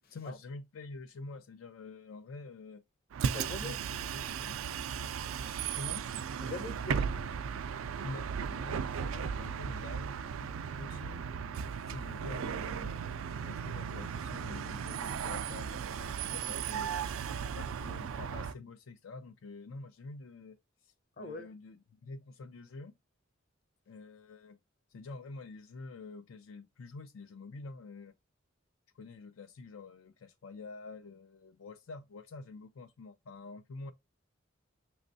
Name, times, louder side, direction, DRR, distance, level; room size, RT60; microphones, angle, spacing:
voice 1, 0.1-2.8 3.5-4.5 5.7-6.1 8.0-11.2 11.9-13.0 13.4-16.9 17.5-20.6 20.8-22.9 23.9-24.6 24.9-28.1 28.9-33.9, left 3 dB, 85° left, 0.5 m, -47 dB
Bus, 3.1-18.5, right 7 dB, 85° right, 0.4 m, -36 dB
voice 2, 3.2-3.8 4.2-4.6 6.4-7.1 21.2-21.5, left 2 dB, 50° left, 0.9 m, -42 dB
6.1 x 3.1 x 2.6 m
head